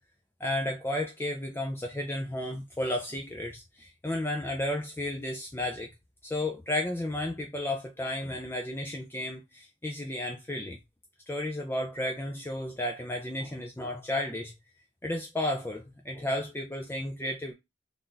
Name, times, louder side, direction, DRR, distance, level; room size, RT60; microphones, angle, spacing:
voice 1, 0.4-5.9 6.2-10.8 11.3-14.5 15.0-17.5, left 1 dB, 10° left, 0.4 m, -33 dB
3.4 x 2.6 x 3.9 m
head